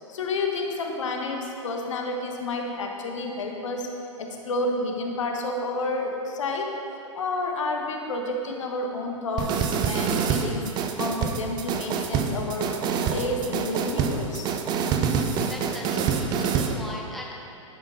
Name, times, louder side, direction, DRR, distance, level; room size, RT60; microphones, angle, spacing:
voice 1, 0.1-3.9 4.2-6.7 7.1-10.6 11.0-14.5, left 2 dB, 70° left, 2 dB, 1.0 m, -30 dB
sound 1, 9.4-16.8, right 6 dB, 25° right, 0.5 m, -26 dB
voice 2, 15.1-17.3, left 1 dB, ahead, -3 dB, 0.9 m, -39 dB
10.5 x 5.2 x 3.8 m, 2.8 s
hypercardioid pair, 115°, 17 cm